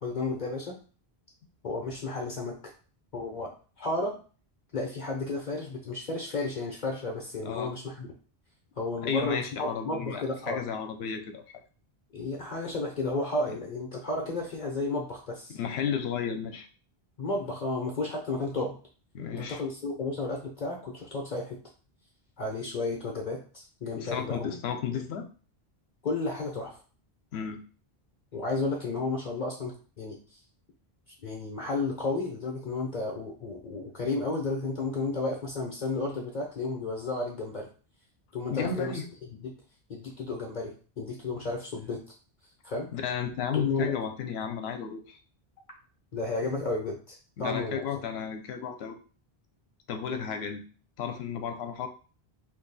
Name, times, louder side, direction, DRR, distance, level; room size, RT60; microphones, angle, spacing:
voice 1, 0.0-0.8 1.6-2.7 3.1-3.5 3.8-4.2 4.7-8.1 8.8-10.6 12.1-15.6 17.2-18.8 19.3-21.6 22.4-24.6 24.9-25.0 26.0-26.8 28.3-30.4 31.2-37.7 38.3-39.5 39.9-42.1 42.6-42.9 43.5-43.9 46.1-47.9, left 3 dB, 50° left, 0 dB, 0.7 m, -32 dB
voice 2, 9.0-11.6 13.5-13.6 15.5-16.7 19.1-19.6 23.9-25.3 27.3-27.6 38.5-39.1 42.9-45.2 47.4-49.0 49.9-50.6 51.0-51.9, left 7 dB, 80° left, 6 dB, 0.8 m, -33 dB
2.7 x 2.6 x 3.9 m, 0.38 s
omnidirectional pair, 1.1 m